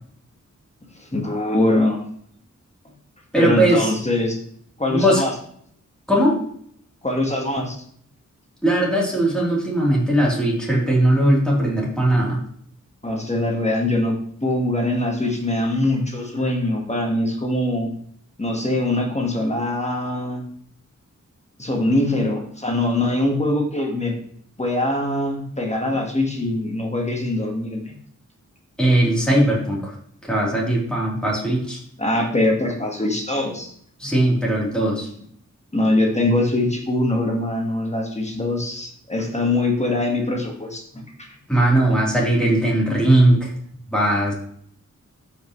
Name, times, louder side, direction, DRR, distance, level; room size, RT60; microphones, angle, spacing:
voice 1, 1.0-2.0 3.4-4.4 4.8-5.3 7.0-7.7 13.0-18.0 18.4-20.4 21.6-24.2 24.6-27.9 32.0-33.7 35.7-41.3, left 1 dB, 20° left, 1 dB, 1.7 m, -23 dB
voice 2, 3.3-3.9 4.9-5.2 6.1-6.4 8.6-12.4 28.8-29.9 30.3-31.8 34.0-35.1 41.5-43.5 43.9-44.3, right 1 dB, 5° left, -5 dB, 3.4 m, -19 dB
13.0 x 5.6 x 3.2 m, 0.64 s
wide cardioid pair, 110°, 30 cm